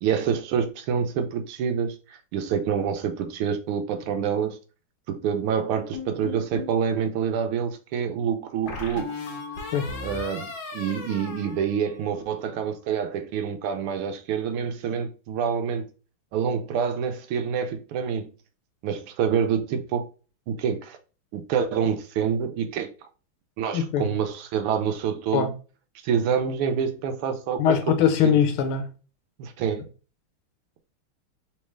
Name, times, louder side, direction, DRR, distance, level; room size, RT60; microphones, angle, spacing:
voice 1, 0.0-4.6 5.1-9.2 10.0-15.8 16.3-18.3 18.8-20.0 20.5-21.0 21.3-22.9 23.6-25.5 26.0-27.9 28.2-28.3 29.4-29.8, right 7 dB, 90° right, 1.6 m, -27 dB
sound 1, 5.9-6.8 8.7-12.3, left 4 dB, 65° left, 1.6 m, -36 dB
voice 2, 23.7-24.1 25.3-25.5 27.6-28.9, left 8 dB, 85° left, 1.6 m, -21 dB
3.8 x 3.3 x 3.1 m
omnidirectional pair, 2.3 m